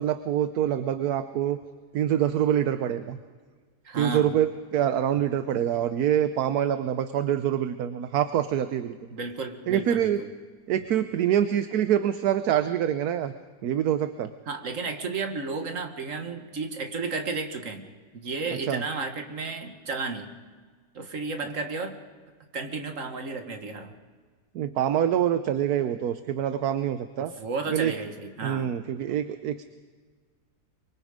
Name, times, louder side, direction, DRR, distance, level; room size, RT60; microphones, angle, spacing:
voice 1, 0.0-1.6 1.9-3.2 4.0-9.0 9.7-10.2 10.7-13.3 13.6-14.3 18.7-18.8 24.5-27.3 27.7-27.9 28.4-29.6, right 10 dB, 65° right, 10 dB, 1.2 m, -25 dB
voice 2, 3.8-4.4 9.1-10.3 14.5-17.9 18.1-20.4 20.9-22.0 22.5-23.9 27.2-28.8, right 4 dB, 50° right, 5 dB, 1.9 m, -33 dB
24.0 x 24.0 x 5.1 m, 1.5 s
omnidirectional pair, 1.8 m